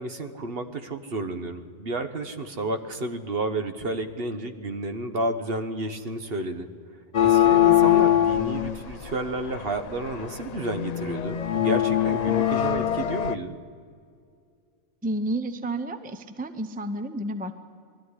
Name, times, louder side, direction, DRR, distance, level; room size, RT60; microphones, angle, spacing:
voice 1, 0.0-6.7 7.2-13.6, right 2 dB, 50° right, 8 dB, 1.3 m, -31 dB
sound 1, 7.1-13.4, left 12 dB, 50° left, 0.4 m, -22 dB
voice 2, 15.0-17.5, right 1 dB, 10° right, 10 dB, 0.6 m, -30 dB
20.5 x 13.5 x 9.8 m, 2.4 s
omnidirectional pair, 1.3 m